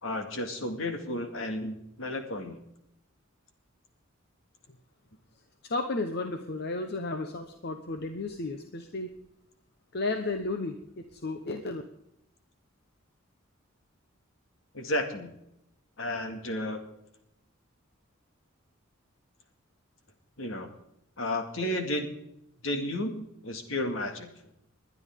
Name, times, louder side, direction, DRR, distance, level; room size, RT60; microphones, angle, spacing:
voice 1, 0.0-2.6 14.7-15.3 16.0-16.8 20.4-20.7 21.2-22.1 22.6-24.3, left 1 dB, 70° left, 5 dB, 2.1 m, -32 dB
voice 2, 5.6-9.1 9.9-11.8, left 3 dB, 50° left, 5 dB, 1.0 m, -33 dB
21.0 x 10.5 x 3.7 m, 0.79 s
head